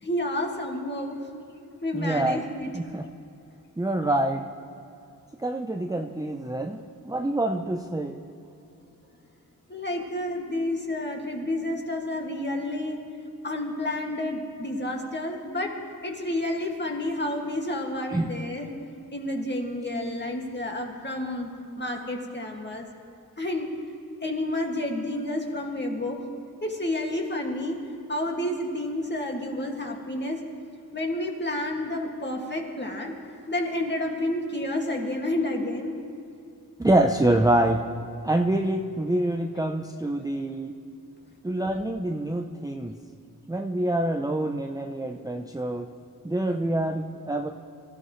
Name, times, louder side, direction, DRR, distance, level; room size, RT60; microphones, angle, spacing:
voice 1, 0.0-1.2 1.8-2.7 9.7-13.0 13.4-15.7 16.0-18.7 19.1-21.5 21.8-22.9 23.4-23.7 24.2-26.2 26.6-27.8 28.1-30.4 30.9-33.1 33.5-35.9, left 1 dB, 30° left, 0 dB, 2.0 m, -30 dB
voice 2, 1.9-2.4 2.7-3.0 3.8-4.5 5.4-8.2 18.1-18.3 36.8-37.8 38.2-40.7 41.4-42.9 43.5-45.9 46.2-47.5, right 1 dB, 10° right, 3 dB, 0.5 m, -26 dB
24.5 x 14.0 x 3.1 m, 2.6 s
wide cardioid pair, 90°, 36 cm